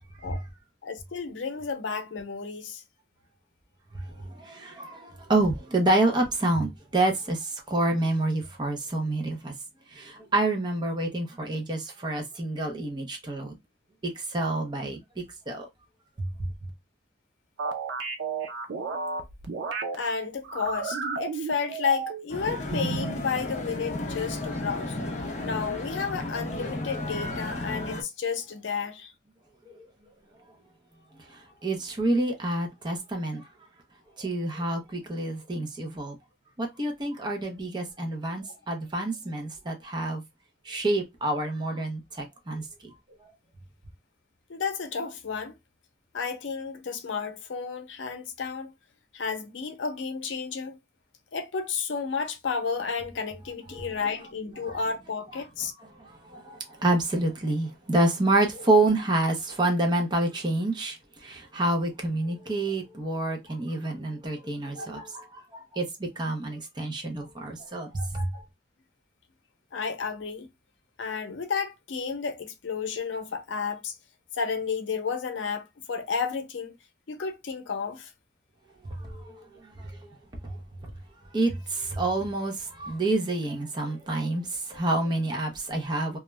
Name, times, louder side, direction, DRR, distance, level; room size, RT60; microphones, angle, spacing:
voice 1, 0.8-2.8 19.9-25.0 25.4-29.1 44.5-45.5 46.1-48.7 49.1-50.8 51.3-55.7 69.7-70.5 71.0-73.9 74.3-76.8 77.1-78.1 83.8-84.3 84.7-84.8, left 5 dB, 90° left, 0.5 m, -32 dB
voice 2, 3.9-9.5 9.9-13.6 14.0-15.0 15.5-15.7 16.2-16.3 29.7-29.8 31.6-33.4 34.2-36.2 36.6-40.2 40.7-42.9 53.7-53.9 54.6-54.8 56.0-68.4 78.8-79.4 79.8-79.9 80.4-80.6 80.8-80.9 81.3-86.2, right 2 dB, 25° right, 0.6 m, -28 dB
sound 1, 17.6-20.0 20.4-22.3 22.7-23.2, right 4 dB, 90° right, 0.5 m, -32 dB
sound 2, 22.3-28.0, left 2 dB, 40° left, 0.5 m, -33 dB
2.3 x 2.1 x 2.9 m
head